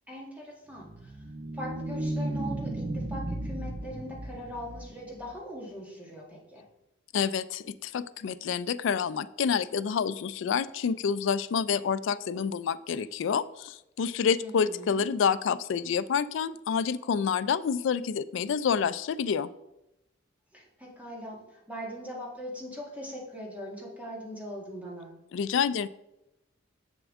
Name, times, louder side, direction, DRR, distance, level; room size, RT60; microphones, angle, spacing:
voice 1, 0.1-1.2 1.5-6.6 14.4-15.1 20.5-25.1, equal, 5° right, -2 dB, 1.5 m, -41 dB
sound 1, 0.8-5.3, right 1 dB, 30° right, 0.4 m, -35 dB
voice 2, 7.1-19.5 25.3-25.9, left 6 dB, 65° left, 15 dB, 0.3 m, -28 dB
7.1 x 6.7 x 3.6 m, 0.89 s
head